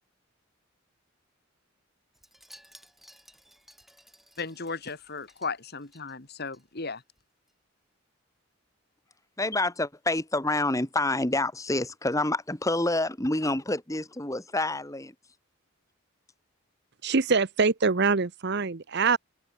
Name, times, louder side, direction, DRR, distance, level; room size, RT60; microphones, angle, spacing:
Wind chime, 2.1-6.6 6.9-7.2 7.5-7.6, equal, ahead, 8.0 m, -56 dB
voice 1, 4.4-7.0, left 4 dB, 50° left, 2.0 m, -36 dB
voice 2, 9.4-15.0, left 2 dB, 15° left, 1.7 m, -27 dB
voice 3, 17.0-19.2, right 4 dB, 50° right, 0.8 m, -24 dB
open air
head